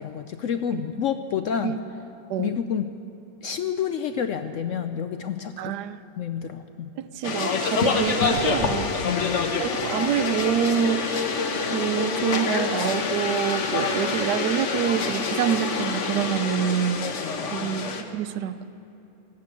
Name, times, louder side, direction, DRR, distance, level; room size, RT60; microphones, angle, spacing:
voice 1, 0.0-1.8 2.4-2.9 3.4-5.8 6.2-6.9 9.0-9.5 17.0-17.7, left 8 dB, 70° left, 8 dB, 0.8 m, -29 dB
voice 2, 5.6-6.0 7.0-9.0 9.6-11.3 11.7-17.1 17.5-18.7, right 10 dB, 80° right, 14 dB, 1.1 m, -26 dB
sound 1, 7.2-18.0, left 5 dB, 50° left, 1.2 m, -26 dB
14.5 x 11.5 x 8.3 m, 2.8 s
omnidirectional pair, 1.8 m